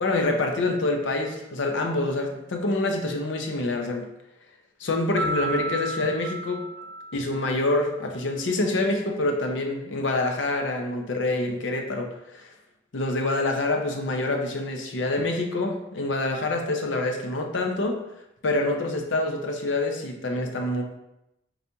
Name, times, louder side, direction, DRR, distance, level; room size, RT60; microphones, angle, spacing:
voice 1, 0.0-4.1 4.8-6.6 7.1-12.5 12.9-18.0 18.4-20.8, left 2 dB, 60° left, 3 dB, 0.6 m, -26 dB
Piano, 5.2-8.0, right 2 dB, 35° right, 0.6 m, -32 dB
4.0 x 2.9 x 3.4 m, 0.87 s
head